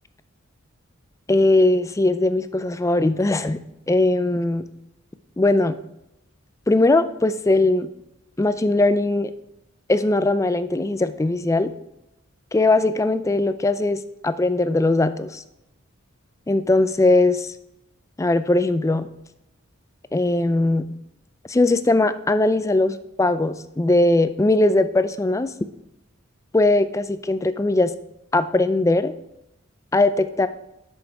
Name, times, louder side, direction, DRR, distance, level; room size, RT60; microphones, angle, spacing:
voice 1, 1.3-4.6 5.4-5.8 6.7-7.9 8.4-9.3 9.9-11.7 12.5-15.4 16.5-17.5 18.2-19.1 20.1-20.9 21.5-25.5 26.5-27.9 28.3-29.1 29.9-30.5, left 2 dB, 15° left, 12 dB, 0.4 m, -20 dB
9.5 x 6.4 x 4.7 m, 0.86 s
head